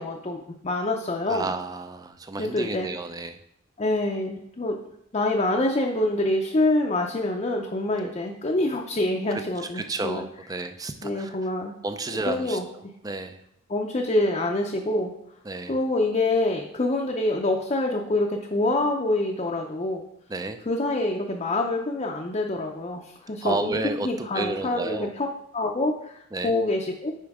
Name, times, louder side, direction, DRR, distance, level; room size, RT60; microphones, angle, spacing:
voice 1, 0.0-1.5 2.4-2.9 3.8-4.7 5.1-10.2 11.0-11.7 12.3-12.7 13.7-15.1 15.7-20.0 20.7-25.3 25.5-26.2 26.4-27.1, left 2 dB, 30° left, 0 dB, 0.5 m, -26 dB
voice 2, 1.3-3.4 8.0-8.1 9.7-11.4 11.8-12.6 13.0-13.4 15.5-15.7 20.3-20.6 23.4-25.1 26.3-26.5, right 3 dB, 15° right, 8 dB, 0.4 m, -31 dB
9.9 x 4.4 x 3.5 m, 0.74 s
head